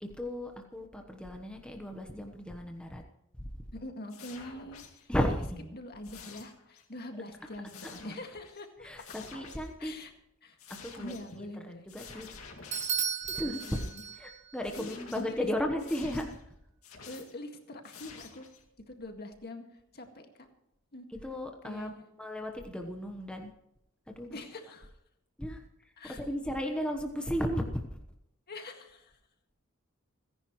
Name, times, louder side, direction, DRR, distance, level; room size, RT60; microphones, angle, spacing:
voice 1, 0.0-3.0 3.4-3.5 5.1-5.8 8.8-9.9 10.7-12.3 13.2-13.6 14.2-16.4 21.1-21.9 22.2-23.5 24.2-24.3 25.4-28.0, equal, 5° left, 3 dB, 1.1 m, -35 dB
voice 2, 3.7-5.1 5.7-8.9 9.8-10.1 10.4-10.6 11.0-11.9 13.4-14.0 14.7-15.5 17.1-18.5 18.9-20.5 20.9-21.1 21.6-21.9 24.2-24.9 26.0-26.2 28.5-29.1, left 1 dB, 50° left, 4 dB, 2.0 m, -44 dB
sound 1, 4.1-5.1 6.0-6.9 7.2-8.7 9.0-9.7 10.6-11.4 11.9-13.2 13.5-14.2 14.6-15.4 15.8-16.4 16.8-17.4 17.8-18.6, left 5 dB, 85° left, 2.3 m, -50 dB
Bell / Doorbell, 12.7-14.6, right 7 dB, 35° right, 1.1 m, -34 dB
29.5 x 10.5 x 3.2 m, 0.82 s
head